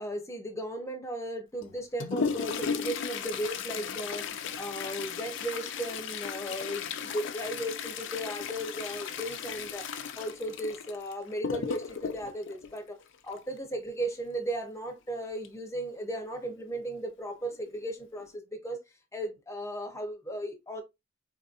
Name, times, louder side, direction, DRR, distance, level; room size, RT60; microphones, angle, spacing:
voice 1, 0.0-4.3 4.6-9.9 10.2-13.0 13.2-18.8 19.1-20.8, right 1 dB, 15° left, 0.8 m, -36 dB
Toilet flush, 1.6-13.6 15.4-15.5 15.9-16.0 16.8-16.9 17.5-17.8 18.2-18.4, left 6 dB, 65° left, 0.5 m, -36 dB
4.1 x 2.7 x 2.5 m
head